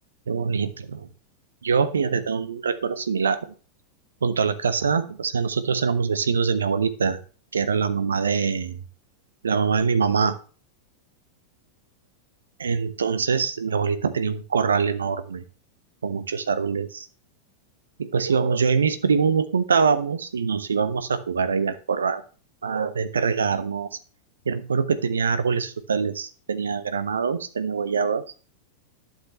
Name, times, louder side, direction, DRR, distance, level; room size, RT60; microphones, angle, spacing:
voice 1, 0.3-1.1 1.6-3.4 4.2-7.2 7.5-8.8 9.4-10.4 12.6-15.4 16.0-17.1 18.0-22.2 22.6-23.9 24.5-28.2, right 5 dB, 70° right, 12 dB, 0.9 m, -24 dB
11.5 x 6.5 x 3.1 m, 0.38 s
figure-of-eight pair, 90°, 0 cm